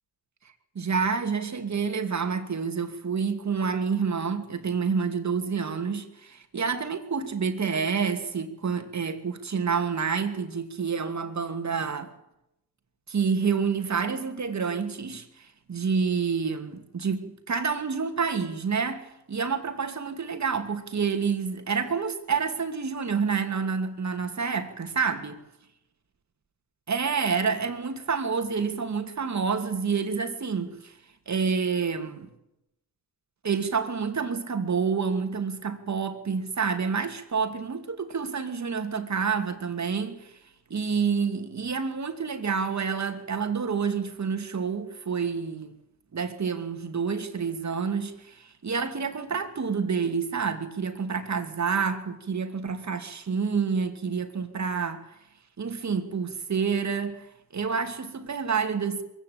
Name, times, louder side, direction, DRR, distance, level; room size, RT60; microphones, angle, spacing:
voice 1, 0.7-12.1 13.1-25.4 26.9-31.0 31.3-32.3 33.4-40.4 40.7-45.8 46.1-55.1 55.6-59.0, right 5 dB, 40° right, 2.8 m, -28 dB
22.5 x 15.5 x 8.8 m
cardioid pair, 75°, 43 cm